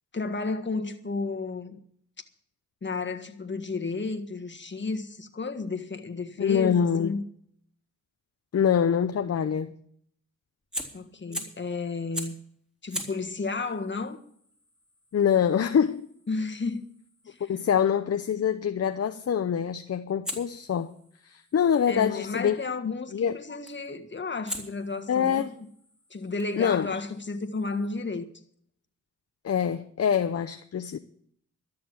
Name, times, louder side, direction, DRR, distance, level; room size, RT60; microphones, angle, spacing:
voice 1, 0.1-1.8 2.8-7.2 10.9-12.4 12.8-14.2 16.3-16.8 17.2-17.5 21.9-25.7 26.1-28.3, left 3 dB, 35° left, 1.6 m, -32 dB
voice 2, 6.4-7.1 8.5-9.8 15.1-16.1 17.4-20.9 21.2-22.6 23.1-23.4 25.1-25.6 26.6-26.9 29.4-31.0, left 8 dB, 50° left, 0.7 m, -25 dB
Fire, 10.6-11.7 12.1-12.5 12.9-17.8 20.2-22.3 23.7-24.0 24.5-27.9, equal, ahead, 3.5 m, -42 dB
13.0 x 6.8 x 9.4 m
cardioid pair, 50°, 31 cm